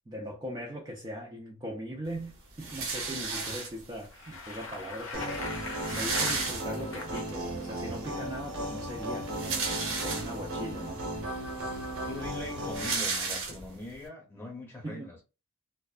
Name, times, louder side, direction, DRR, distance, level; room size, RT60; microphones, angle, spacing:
voice 1, 0.1-9.7 10.0-11.0 14.8-15.1, equal, 20° right, 0.4 m, -40 dB
sound 1, 2.6-4.0 4.9-5.0 5.2-5.3 5.5-7.1 7.6-7.7 9.1-10.6 11.2-11.3 11.6-13.9, right 4 dB, 65° right, 0.7 m, -33 dB
Bicycle, 4.0-7.3, left 3 dB, 60° left, 0.6 m, -40 dB
sound 2, 5.1-13.0, right 1 dB, 90° right, 1.0 m, -36 dB
voice 2, 12.1-15.2, left 2 dB, 10° left, 0.8 m, -42 dB
2.5 x 2.1 x 2.4 m
head